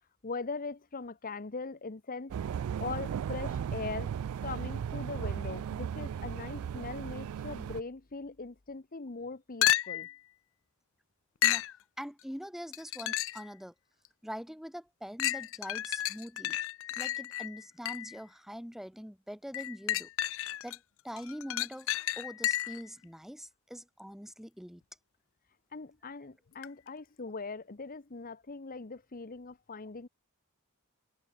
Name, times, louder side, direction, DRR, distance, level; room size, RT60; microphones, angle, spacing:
voice 1, 0.2-2.4 2.8-4.1 4.4-10.1 25.7-30.1, left 4 dB, 40° left, 0.9 m, -40 dB
sound 1, 2.3-7.8, right 8 dB, 75° right, 0.3 m, -36 dB
sound 2, 9.6-10.2 11.4-11.8 12.7-13.5 14.1-14.2 15.2-18.2 19.5-20.8 21.2-22.9 26.6-26.7, left 13 dB, 65° left, 0.5 m, -32 dB
voice 2, 12.0-13.7 14.2-16.6 17.0-20.1 20.6-24.8, equal, ahead, 2.2 m, -43 dB
head